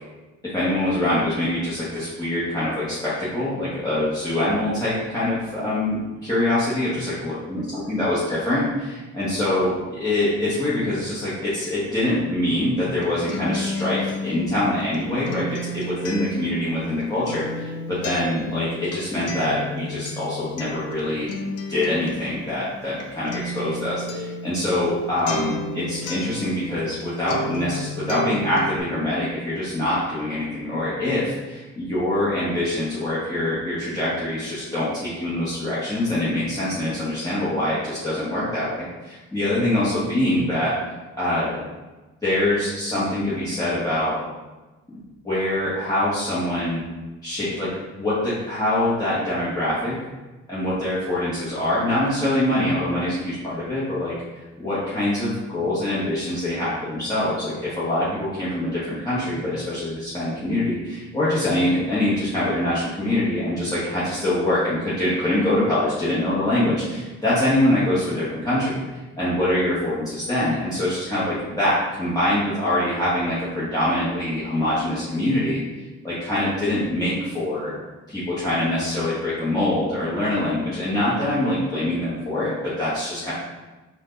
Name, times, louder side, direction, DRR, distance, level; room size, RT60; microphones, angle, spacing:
voice 1, 0.5-7.6 7.9-21.3 21.7-40.7 41.2-41.6 42.2-44.2 44.9-46.8 47.2-47.7 48.0-50.0 50.5-54.1 54.6-68.8 69.2-75.6 76.0-77.7 78.1-83.3, left 1 dB, 10° left, -11 dB, 1.4 m, -24 dB
Acoustic guitar, 12.8-27.0 27.3-28.8, left 1 dB, 55° left, 0.7 m, -32 dB
4.5 x 2.7 x 3.9 m, 1.2 s
cardioid pair, 90°, 30 cm